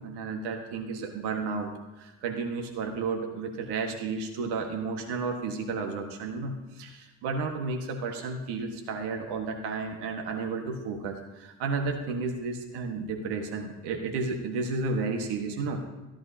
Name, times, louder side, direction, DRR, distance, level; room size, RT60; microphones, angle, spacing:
voice 1, 0.0-1.7 2.0-15.8, right 4 dB, 60° right, 3 dB, 1.7 m, -32 dB
14.0 x 10.5 x 2.9 m, 1.1 s
hypercardioid pair, 65°, 45 cm